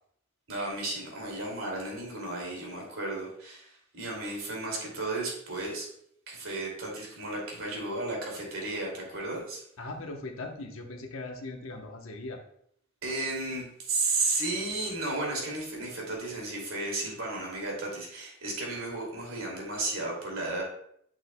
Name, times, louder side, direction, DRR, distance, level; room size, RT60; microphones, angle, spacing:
voice 1, 0.5-5.9 6.3-9.6 13.0-20.6, right 2 dB, 80° right, -1 dB, 2.5 m, -33 dB
voice 2, 9.8-12.4, left 2 dB, 80° left, 3 dB, 1.0 m, -39 dB
8.2 x 6.2 x 2.2 m, 0.68 s
head